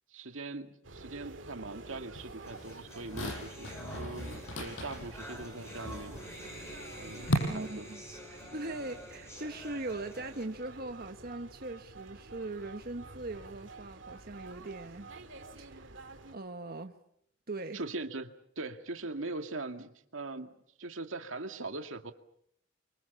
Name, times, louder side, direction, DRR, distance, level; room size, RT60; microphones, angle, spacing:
voice 1, 0.1-6.2 6.5-7.9 17.7-22.1, right 2 dB, 85° right, 2.1 m, -41 dB
sound 1, 0.8-16.4, right 2 dB, 70° right, 2.7 m, -50 dB
sound 2, 2.1-7.4, equal, 80° left, 6.2 m, -38 dB
sound 3, 2.4-10.4, equal, 15° left, 6.2 m, -48 dB
voice 2, 7.4-8.0 8.3-15.1 15.5-17.0 17.5-17.8, right 2 dB, 50° right, 1.4 m, -40 dB
29.5 x 24.5 x 7.1 m
head